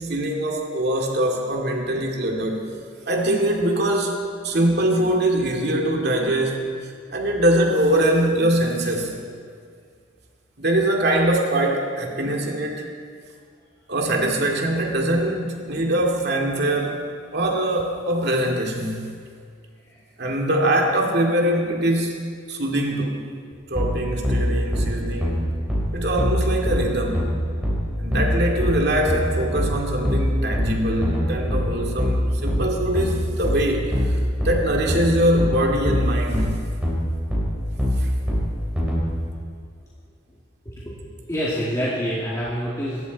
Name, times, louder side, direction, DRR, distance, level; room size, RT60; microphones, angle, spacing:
voice 1, 0.0-2.7 3.1-9.1 10.6-12.8 13.9-17.0 17.3-19.2 20.2-23.2 23.7-25.5 25.9-27.3 28.0-34.1 34.4-36.6 38.0-38.1, right 1 dB, 55° right, 0 dB, 2.4 m, -23 dB
sound 1, 23.8-39.0, equal, 5° right, 3.9 m, -23 dB
voice 2, 41.3-43.1, equal, 15° left, -7 dB, 2.2 m, -27 dB
25.0 x 13.0 x 4.1 m, 2.1 s
head